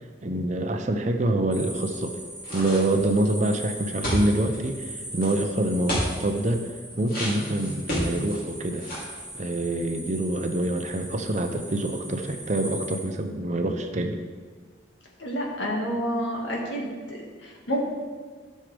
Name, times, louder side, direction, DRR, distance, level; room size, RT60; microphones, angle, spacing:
voice 1, 0.2-2.2 2.5-6.7 7.0-8.9 9.3-14.2, right 1 dB, 35° right, 6 dB, 0.6 m, -26 dB
sound 1, 1.5-13.1, right 1 dB, 5° left, 2.1 m, -40 dB
sound 2, 2.4-3.1 4.0-4.6 5.2-5.3 5.9-6.1 7.1-8.4 8.8-9.1, equal, 45° left, 3.0 m, -29 dB
voice 2, 15.2-17.8, equal, 75° left, -2 dB, 1.9 m, -29 dB
13.0 x 6.5 x 3.4 m, 1.5 s
head